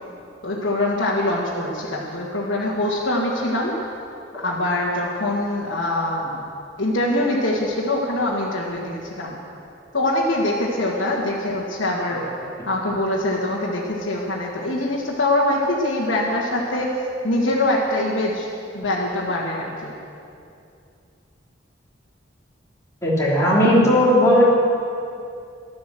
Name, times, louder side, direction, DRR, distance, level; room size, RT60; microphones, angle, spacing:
voice 1, 0.4-3.7 4.4-6.5 6.8-9.4 9.9-12.3 12.7-18.5 18.7-19.9, left 1 dB, 85° left, -6 dB, 1.8 m, -23 dB
voice 2, 23.0-24.4, equal, 15° left, -6 dB, 3.4 m, -16 dB
13.5 x 12.0 x 7.7 m, 2.5 s
head